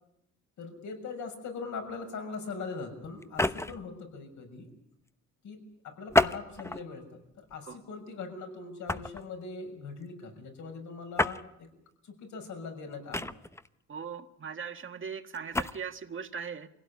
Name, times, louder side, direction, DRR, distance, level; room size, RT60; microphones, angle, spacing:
voice 1, 0.6-4.7 5.4-7.1 7.4-11.7 12.0-13.3, left 4 dB, 75° left, 4 dB, 6.5 m, -41 dB
sound 1, 3.2-3.9 6.1-6.9 7.5-7.7 8.9-9.2 11.2-11.4 13.1-13.7 15.3-15.7, left 2 dB, 10° left, 0.9 m, -28 dB
voice 2, 13.9-16.7, right 6 dB, 40° right, 7 dB, 1.7 m, -39 dB
24.5 x 17.0 x 9.7 m, 0.81 s
cardioid pair, 90°, 30 cm